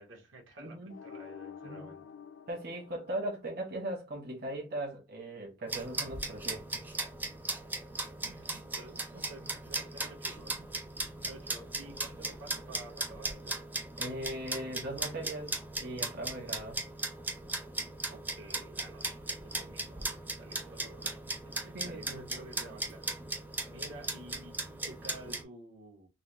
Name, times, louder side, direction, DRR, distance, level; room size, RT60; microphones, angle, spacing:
voice 1, 0.0-2.0 8.1-10.7 11.2-13.6 18.1-26.1, right 2 dB, 75° right, 1.1 m, -51 dB
voice 2, 0.6-0.9 1.6-1.9 2.5-6.8 14.0-16.8 21.7-22.2, right 1 dB, 50° right, 1.1 m, -39 dB
sound 1, 0.9-3.9, left 7 dB, 80° left, 0.4 m, -49 dB
sound 2, 5.7-25.4, right 2 dB, 10° right, 0.4 m, -38 dB
4.0 x 2.0 x 3.0 m
head